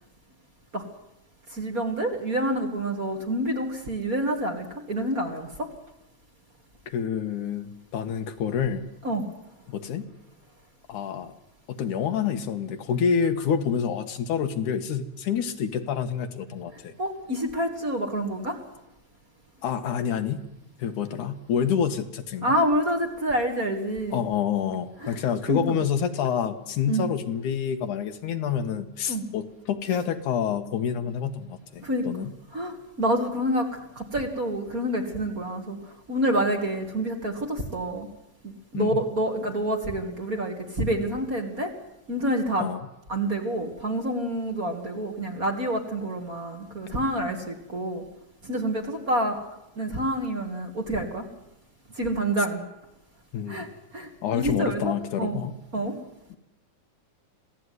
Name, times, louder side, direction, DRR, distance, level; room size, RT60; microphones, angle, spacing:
voice 1, 1.5-5.7 9.0-9.2 17.0-18.6 22.4-24.2 25.0-25.2 25.5-25.6 26.9-27.0 29.1-29.2 31.8-32.1 32.5-35.8 36.1-38.1 38.4-41.7 42.1-42.7 43.1-48.0 48.4-49.4 49.8-51.2 51.9-52.6 53.5-53.7 53.9-54.9 55.2-55.4 55.7-56.0, right 1 dB, 30° right, 3 dB, 2.5 m, -27 dB
voice 2, 6.9-8.8 9.7-10.1 10.9-11.3 11.7-16.9 19.6-20.4 20.8-22.5 24.1-32.3 38.7-39.0 42.6-42.8 53.3-53.7 54.2-55.5 56.3-56.4, left 7 dB, 75° left, 7 dB, 2.9 m, -28 dB
26.5 x 17.0 x 9.6 m, 0.91 s
omnidirectional pair, 3.6 m